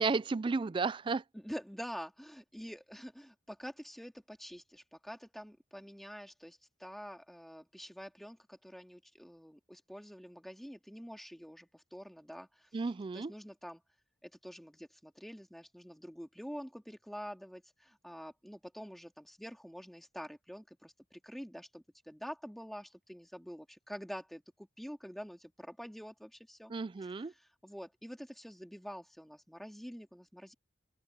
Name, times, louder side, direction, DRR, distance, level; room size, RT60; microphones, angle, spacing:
voice 1, 0.0-1.2 12.7-13.3 26.7-27.3, right 4 dB, 25° right, 0.3 m, -33 dB
voice 2, 1.3-12.7 13.1-13.8 14.2-26.7 27.0-30.5, equal, ahead, 2.2 m, -47 dB
head